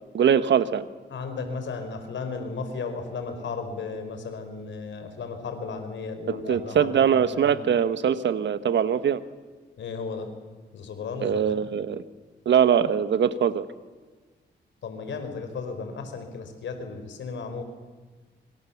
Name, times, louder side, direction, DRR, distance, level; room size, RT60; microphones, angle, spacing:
voice 1, 0.1-0.8 6.3-9.2 11.2-12.0 12.4-13.6, right 8 dB, 75° right, 13 dB, 1.3 m, -22 dB
voice 2, 1.1-7.6 9.8-10.3 10.7-11.4 14.8-17.6, left 4 dB, 80° left, 7 dB, 4.4 m, -35 dB
26.0 x 25.0 x 7.2 m, 1.4 s
cardioid pair, 80°, 19 cm